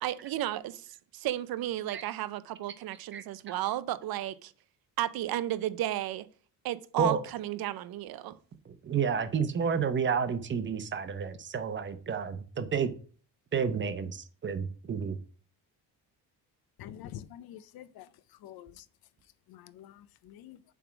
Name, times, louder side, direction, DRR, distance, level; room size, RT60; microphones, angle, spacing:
voice 1, 0.0-4.5 5.0-6.3 6.6-8.4, right 13 dB, 65° right, 0.6 m, -33 dB
voice 2, 3.1-3.6 7.0-7.2 8.8-12.9 13.5-15.2, right 6 dB, 30° right, 0.8 m, -30 dB
voice 3, 16.8-18.1 18.4-18.8 19.5-20.6, left 11 dB, 65° left, 0.6 m, -47 dB
7.2 x 3.6 x 6.0 m
cardioid pair, 145°, 39 cm